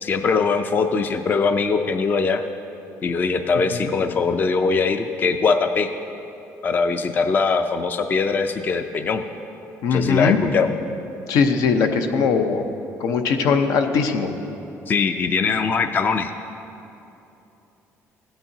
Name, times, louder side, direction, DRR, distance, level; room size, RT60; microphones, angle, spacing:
voice 1, 0.0-2.4 3.0-5.9 6.6-9.2 9.9-10.7 14.9-16.3, left 4 dB, 30° left, 8 dB, 0.4 m, -21 dB
voice 2, 9.8-10.4 11.3-12.6 13.0-14.3, left 5 dB, 80° left, 6 dB, 0.7 m, -20 dB
16.5 x 8.8 x 2.7 m, 2.9 s
cardioid pair, 125°, 6 cm